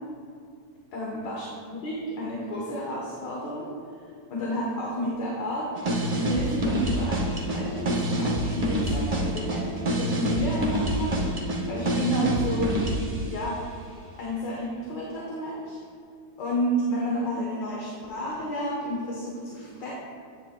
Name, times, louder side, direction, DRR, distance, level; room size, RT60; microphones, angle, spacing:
voice 1, 0.9-3.7 4.3-9.7 10.0-11.2 11.7-12.8 13.3-13.6 14.2-15.8 16.4-19.9, equal, 70° left, -4 dB, 1.8 m, -31 dB
sound 1, 5.7-13.2, right 1 dB, 45° right, 0.5 m, -26 dB
10.5 x 9.1 x 2.2 m, 2.3 s
omnidirectional pair, 2.0 m